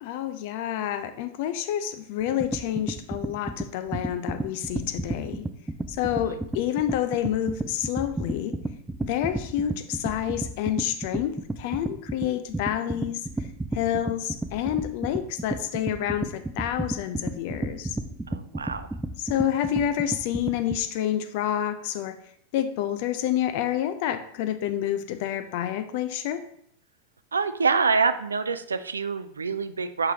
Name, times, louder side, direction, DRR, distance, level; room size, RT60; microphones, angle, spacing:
voice 1, 0.0-5.5 5.9-8.6 9.0-13.3 13.7-18.0 19.2-22.2 22.5-26.4, left 11 dB, 50° left, 10 dB, 0.5 m, -28 dB
sound 1, 2.2-20.8, right 2 dB, 5° right, 0.4 m, -32 dB
voice 2, 18.3-18.9 27.3-30.1, right 5 dB, 75° right, 11 dB, 0.4 m, -26 dB
7.6 x 4.7 x 2.8 m, 0.68 s
figure-of-eight pair, 90°, 0 cm